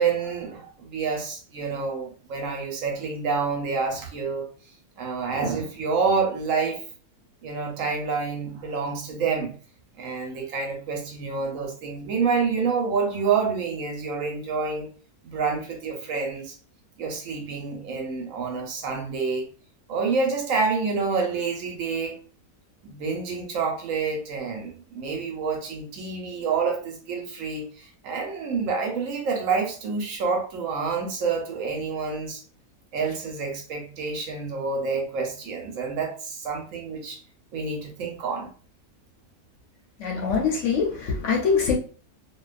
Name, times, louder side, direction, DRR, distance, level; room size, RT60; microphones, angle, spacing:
voice 1, 0.0-4.5 5.0-6.8 7.4-9.5 10.0-14.9 15.2-16.6 17.0-19.4 19.9-22.2 22.8-32.4 32.9-37.2 37.5-38.5, right 5 dB, 70° right, 0.9 m, -28 dB
voice 2, 40.0-41.7, left 5 dB, 65° left, 0.9 m, -23 dB
2.5 x 2.2 x 2.3 m
omnidirectional pair, 1.6 m